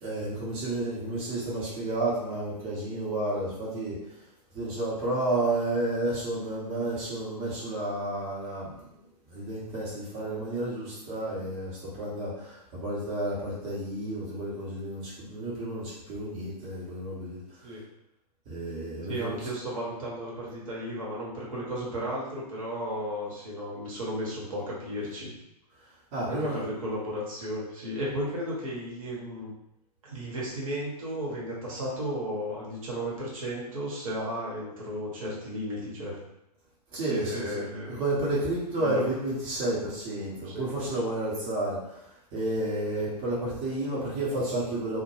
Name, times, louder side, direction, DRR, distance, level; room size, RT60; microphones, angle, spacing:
voice 1, 0.0-4.0 4.5-8.7 9.3-17.4 18.5-19.4 26.1-26.6 36.9-41.8 42.3-45.0, right 1 dB, 25° right, -8 dB, 0.8 m, -31 dB
voice 2, 19.1-25.3 26.3-29.5 30.0-36.2 37.0-38.0 38.8-39.1 40.3-40.9, equal, 55° right, -5 dB, 0.9 m, -34 dB
2.2 x 2.1 x 3.0 m, 0.83 s
figure-of-eight pair, 110°, 21 cm